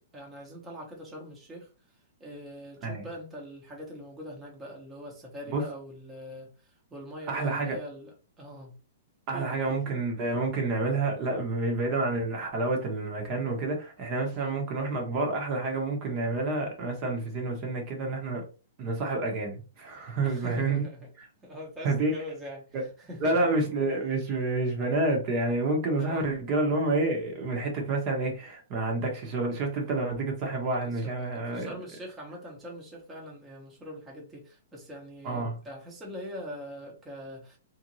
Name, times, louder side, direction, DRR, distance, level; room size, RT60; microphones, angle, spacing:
voice 1, 0.1-1.7 2.2-8.7 9.3-9.8 14.3-14.6 20.2-21.1 21.4-23.5 26.0-26.3 30.8-31.0 31.3-37.6, equal, 15° right, 1.1 m, -43 dB
voice 2, 7.3-7.8 9.3-18.4 18.8-20.9 21.8-22.2 22.7-22.8 23.2-31.7 35.2-35.5, right 2 dB, 35° right, 1.0 m, -29 dB
3.5 x 2.7 x 3.1 m
hypercardioid pair, 145°, 0 cm